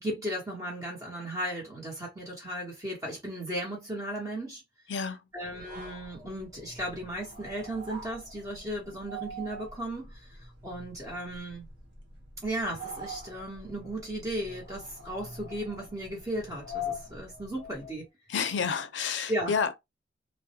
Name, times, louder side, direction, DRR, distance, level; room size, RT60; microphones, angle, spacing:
voice 1, 0.0-4.6 5.3-10.2 10.6-11.7 12.4-18.1 19.3-19.5, right 1 dB, 20° right, 0.9 m, -35 dB
voice 2, 4.9-5.2 18.3-19.8, left 6 dB, 75° left, 0.5 m, -29 dB
sound 1, 5.5-18.0, left 2 dB, 65° right, 1.0 m, -44 dB
2.2 x 2.1 x 2.8 m
head